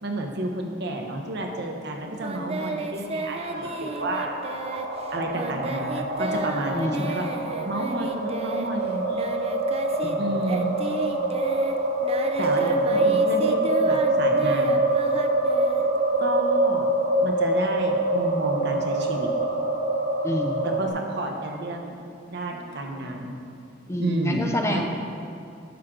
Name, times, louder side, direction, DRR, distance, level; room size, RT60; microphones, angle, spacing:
voice 1, 0.0-4.3 5.1-7.2 7.6-9.2 10.2-10.7 12.4-14.8 16.2-16.9 17.2-19.3 20.6-22.0 22.3-23.3 24.0-24.8, right 1 dB, 60° right, 2 dB, 1.0 m, -30 dB
Singing, 2.2-10.2 10.4-16.3, right 3 dB, 30° right, 0.4 m, -33 dB
sound 1, 3.0-20.9, right 2 dB, 85° right, 1.6 m, -25 dB
voice 2, 6.7-7.2 10.0-10.3 13.0-13.1 20.2-20.7 23.9-24.8, left 1 dB, 15° left, 2 dB, 0.6 m, -28 dB
10.5 x 6.3 x 3.8 m, 2.4 s
head